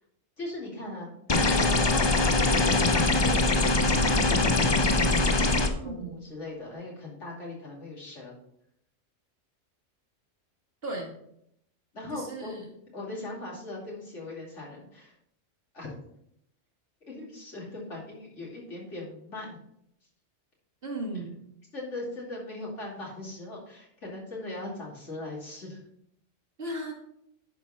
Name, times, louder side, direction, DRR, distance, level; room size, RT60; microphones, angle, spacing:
voice 1, 0.4-1.1 1.5-8.4 11.9-12.5 12.9-15.1 15.7-15.9 17.1-19.6 21.7-25.8, left 2 dB, 70° left, -4 dB, 3.0 m, -39 dB
sound 1, 1.3-5.7, left 2 dB, 35° left, 0.4 m, -23 dB
voice 2, 5.7-6.2 10.8-11.1 12.1-12.7 20.8-21.4 26.6-26.9, right 1 dB, 50° right, -1 dB, 2.0 m, -36 dB
11.5 x 4.6 x 4.2 m, 0.73 s
omnidirectional pair, 1.3 m